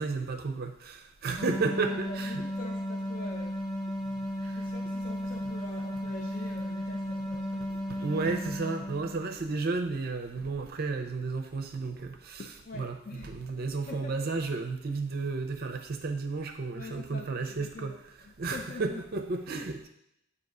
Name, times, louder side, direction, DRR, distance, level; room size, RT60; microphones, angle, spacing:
voice 1, 0.0-2.4 4.4-4.6 5.4-5.5 7.7-12.5 12.7-19.9, right 3 dB, 45° right, 6 dB, 0.5 m, -33 dB
sound 1, 1.4-9.5, equal, ahead, 1.1 m, -35 dB
voice 2, 1.9-3.6 4.6-7.7 12.4-13.3 13.9-14.3 16.8-18.0 18.2-19.0, left 3 dB, 40° left, 1 dB, 0.5 m, -44 dB
7.8 x 2.8 x 5.4 m, 0.78 s
head